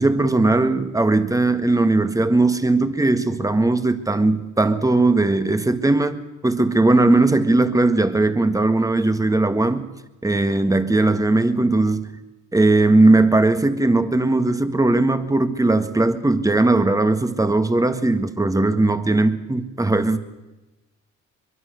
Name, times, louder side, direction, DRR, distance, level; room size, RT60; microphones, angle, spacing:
voice 1, 0.0-9.9 10.2-12.1 12.5-20.2, right 2 dB, 10° right, 1.7 m, -18 dB
23.0 x 22.0 x 6.6 m
cardioid pair, 90°, 30 cm